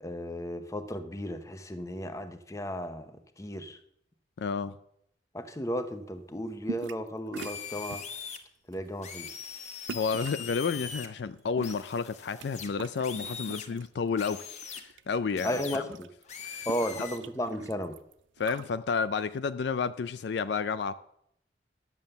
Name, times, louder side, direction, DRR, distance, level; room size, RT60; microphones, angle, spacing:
voice 1, 0.0-3.8 5.3-8.0 8.7-9.3 15.4-16.1 16.7-18.0, equal, 15° left, 0.8 m, -34 dB
voice 2, 4.4-4.8 9.9-15.8 16.4-16.7 18.4-20.9, left 5 dB, 60° left, 0.4 m, -31 dB
sound 1, 6.6-7.1 7.3-8.2 8.7-8.9 9.9-10.5 11.3-12.5 12.7-13.9 14.3-15.0 15.3-15.4 15.6-18.7, right 5 dB, 80° right, 0.5 m, -43 dB
sound 2, 7.4-8.4 9.0-11.1 11.6-13.7 14.2-14.8 15.4-15.8 16.3-17.2, left 6 dB, 40° left, 1.0 m, -41 dB
11.0 x 7.3 x 6.6 m
head